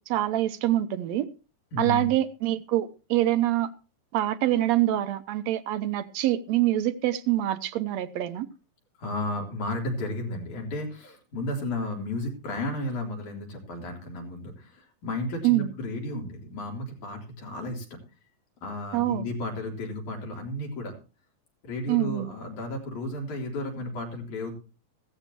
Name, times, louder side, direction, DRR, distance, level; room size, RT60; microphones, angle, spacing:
voice 1, 0.1-1.3 1.8-3.7 4.1-8.5 15.4-15.7 18.9-19.3 21.9-22.3, right 14 dB, 70° right, 1.9 m, -25 dB
voice 2, 1.7-2.1 9.0-18.0 18.6-21.0 21.6-24.5, left 1 dB, 75° left, 4.9 m, -33 dB
16.0 x 14.5 x 2.9 m
omnidirectional pair, 3.5 m